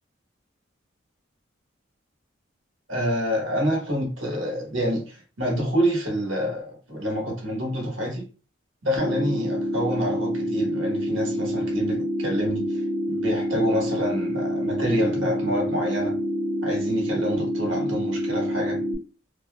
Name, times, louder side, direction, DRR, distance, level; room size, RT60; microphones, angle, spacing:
voice 1, 2.9-8.3 8.8-16.2 16.6-18.8, equal, 80° right, 0.8 m, -27 dB
sound 1, 9.0-19.0, equal, 40° left, 0.6 m, -27 dB
2.5 x 2.1 x 2.4 m
head